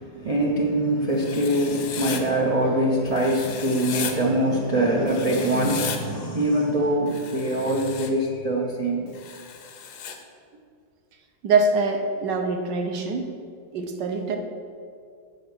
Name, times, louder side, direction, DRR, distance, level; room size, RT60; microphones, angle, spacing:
voice 1, 0.0-9.1, right 1 dB, 50° right, -3 dB, 0.4 m, -23 dB
Writing, 1.2-2.2 3.2-4.1 5.1-6.0 7.1-8.1 9.1-10.2, left 7 dB, 65° left, 1.2 m, -35 dB
voice 2, 11.4-13.3 13.7-14.4, right 3 dB, 75° right, 4 dB, 1.5 m, -23 dB
7.6 x 5.6 x 6.1 m, 2.2 s
omnidirectional pair, 2.0 m